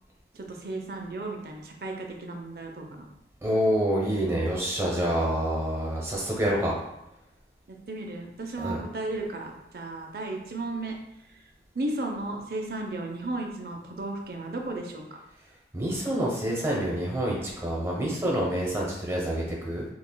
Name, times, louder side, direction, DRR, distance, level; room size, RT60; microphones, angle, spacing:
voice 1, 0.3-3.1 7.7-11.0 11.7-15.0, right 2 dB, 55° right, 2 dB, 0.5 m, -34 dB
voice 2, 3.4-6.7 8.6-8.8 15.7-19.8, equal, 15° right, -4 dB, 0.8 m, -27 dB
5.7 x 2.3 x 2.2 m, 0.89 s
head